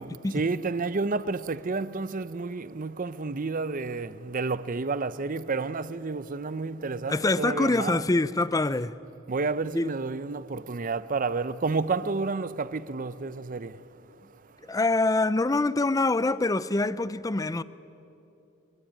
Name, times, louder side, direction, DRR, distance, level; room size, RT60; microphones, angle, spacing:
voice 1, 0.0-8.0 9.3-13.8, right 3 dB, 40° right, 0.6 m, -30 dB
voice 2, 7.1-8.9 9.7-9.9 14.7-17.6, left 2 dB, 15° left, 0.5 m, -25 dB
23.0 x 22.0 x 8.9 m
head